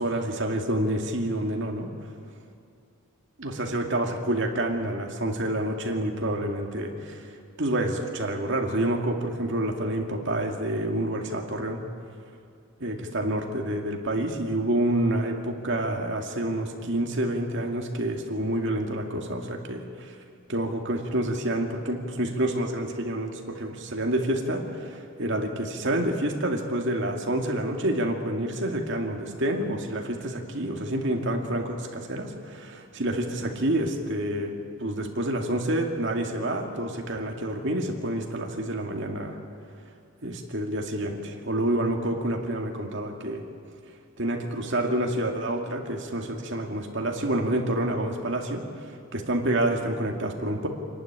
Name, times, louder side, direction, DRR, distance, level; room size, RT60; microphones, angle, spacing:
voice 1, 0.0-1.9 3.4-7.2 7.6-11.8 12.8-20.1 20.5-34.6 34.8-39.4 40.2-43.4 44.2-48.6 49.1-50.7, right 1 dB, 55° right, 2 dB, 2.3 m, -28 dB
26.5 x 11.5 x 9.8 m, 2.4 s
head